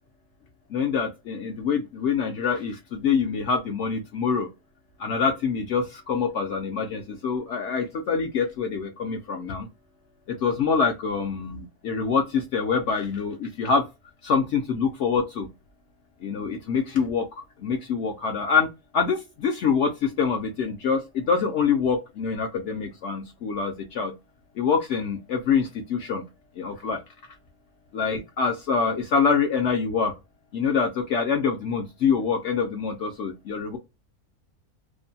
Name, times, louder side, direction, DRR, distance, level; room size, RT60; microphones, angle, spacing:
voice 1, 0.7-4.5 5.0-9.7 10.3-13.8 14.2-15.5 16.2-17.3 17.6-18.7 18.9-24.1 24.6-26.2 26.6-27.0 27.9-30.1 30.5-33.8, left 5 dB, 70° left, 3 dB, 0.7 m, -25 dB
2.7 x 2.1 x 2.6 m, 0.24 s
omnidirectional pair, 1.6 m